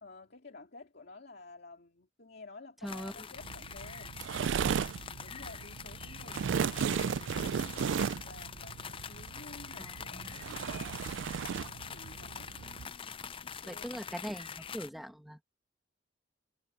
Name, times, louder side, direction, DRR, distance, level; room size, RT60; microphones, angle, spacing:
voice 1, 0.0-4.1 4.4-11.0 11.5-14.3, left 3 dB, 60° left, 2.4 m, -53 dB
sound 1, 2.9-14.9, left 6 dB, 30° left, 0.5 m, -45 dB
sound 2, 3.4-12.9, right 7 dB, 75° right, 0.4 m, -35 dB
voice 2, 9.8-10.4 13.7-15.4, equal, ahead, 1.9 m, -41 dB
head